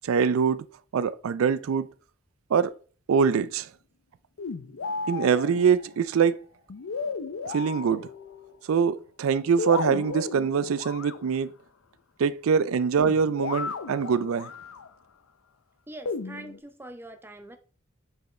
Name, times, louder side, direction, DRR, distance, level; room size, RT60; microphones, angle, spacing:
voice 1, 0.0-0.6 0.9-1.9 2.5-2.7 3.1-3.7 5.1-6.3 7.5-8.1 8.7-11.5 12.2-14.5, right 6 dB, 90° right, 0.4 m, -24 dB
sound 1, 4.4-6.0 6.7-8.6 9.6-11.4 13.0-14.9 16.1-16.6, left 4 dB, 85° left, 0.5 m, -34 dB
voice 2, 15.9-17.6, right 1 dB, 10° right, 0.6 m, -43 dB
7.6 x 4.7 x 3.2 m
head